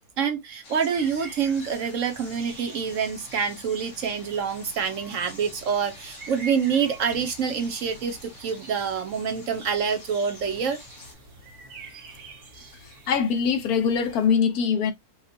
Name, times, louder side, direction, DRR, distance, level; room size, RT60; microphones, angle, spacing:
voice 1, 0.2-10.8, right 6 dB, 60° right, 1.1 m, -26 dB
sound 1, 0.6-11.1, left 3 dB, 55° left, 2.1 m, -48 dB
sound 2, 0.9-14.3, right 3 dB, 90° right, 1.9 m, -47 dB
voice 2, 13.1-14.9, left 6 dB, 75° left, 1.3 m, -22 dB
5.1 x 2.4 x 2.7 m
omnidirectional pair, 1.6 m